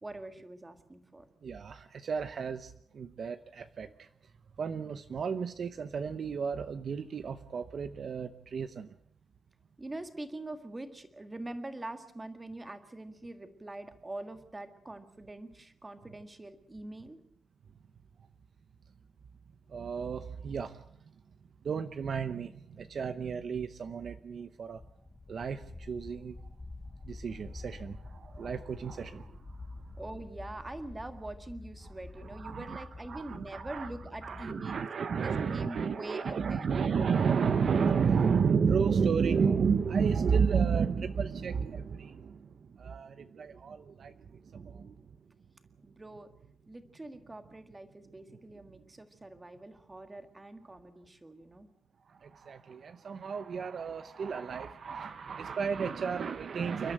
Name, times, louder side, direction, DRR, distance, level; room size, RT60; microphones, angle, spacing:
voice 1, 0.0-1.2 9.8-17.2 30.0-34.8 35.1-36.7 45.8-46.3 46.7-51.7, right 2 dB, 15° right, 8 dB, 1.7 m, -44 dB
voice 2, 1.4-4.1 4.6-8.9 19.7-20.8 21.6-24.8 25.3-26.5 27.0-29.9 32.2-34.0 34.2-45.1 52.1-56.9, right 6 dB, 45° right, 11 dB, 0.8 m, -32 dB
sound 1, 24.7-34.6, left 2 dB, 15° left, 1.3 m, -47 dB
29.5 x 12.5 x 8.9 m, 0.70 s
wide cardioid pair, 170°, 0 cm